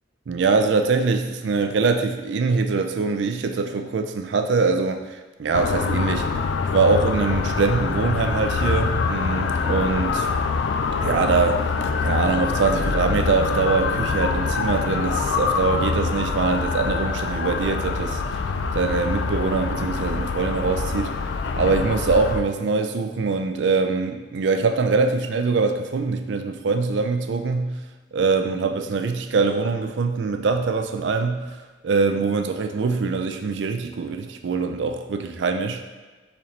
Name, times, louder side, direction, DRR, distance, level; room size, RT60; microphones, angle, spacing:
voice 1, 0.3-6.4 6.7-10.3 11.0-11.7 12.0-18.2 18.7-21.2 21.6-27.8 28.1-35.8, right 4 dB, 80° right, 6 dB, 0.4 m, -23 dB
sound 1, 5.5-22.4, left 4 dB, 70° left, 0.3 m, -25 dB
4.3 x 3.8 x 3.2 m, 1.3 s
head